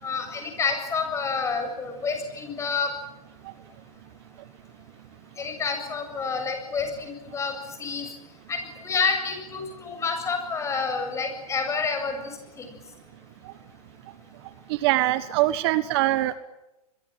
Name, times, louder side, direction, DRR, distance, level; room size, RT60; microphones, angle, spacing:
voice 1, 0.0-2.9 5.4-8.1 8.5-12.2 12.6-12.7, left 5 dB, 15° left, 6 dB, 7.3 m, -28 dB
voice 2, 14.8-16.3, right 15 dB, 45° right, 14 dB, 1.4 m, -22 dB
27.0 x 22.5 x 9.1 m, 0.96 s
hypercardioid pair, 145°, 19 cm